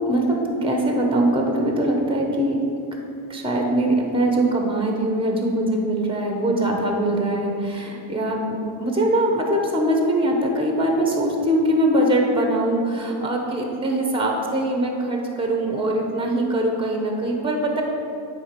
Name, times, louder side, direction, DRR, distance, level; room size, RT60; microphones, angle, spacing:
voice 1, 0.1-2.6 2.9-3.0 3.3-17.8, right 1 dB, 10° right, 1 dB, 0.9 m, -22 dB
9.2 x 3.6 x 5.2 m, 2.8 s
cardioid pair, 90°, 49 cm